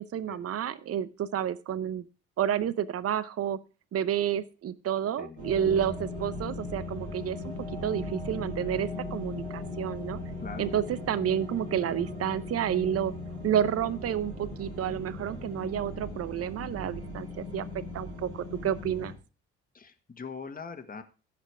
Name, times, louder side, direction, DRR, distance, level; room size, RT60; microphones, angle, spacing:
voice 1, 0.0-2.1 2.4-3.6 3.9-7.5 7.8-10.2 10.6-13.1 13.4-17.7 17.9-19.1, right 9 dB, 45° right, 17 dB, 0.8 m, -30 dB
sound 1, 5.4-19.2, left 2 dB, 90° right, 2.6 m, -38 dB
voice 2, 10.4-10.7 19.7-21.0, left 5 dB, 25° left, 5 dB, 1.7 m, -41 dB
16.0 x 6.1 x 3.4 m, 0.33 s
hypercardioid pair, 50°, 32 cm